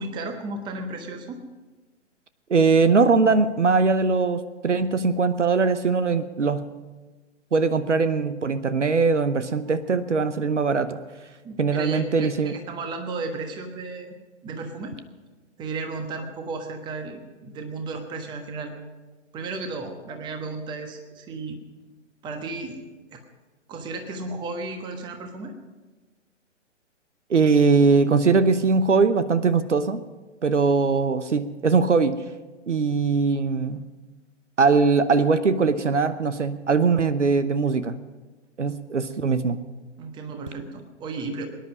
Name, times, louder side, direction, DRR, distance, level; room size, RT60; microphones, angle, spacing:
voice 1, 0.0-1.4 11.4-14.1 14.4-14.9 15.6-18.7 19.3-21.6 22.2-22.8 23.1-23.2 23.7-25.5 40.0-41.5, right 3 dB, 10° right, 6 dB, 1.3 m, -34 dB
voice 2, 2.5-6.7 7.5-11.0 11.6-12.6 27.3-30.0 30.4-32.2 32.7-33.9 34.6-38.0 38.6-39.6, right 4 dB, 70° right, 13 dB, 0.9 m, -21 dB
23.0 x 10.5 x 5.4 m, 1.2 s
figure-of-eight pair, 125°, 37 cm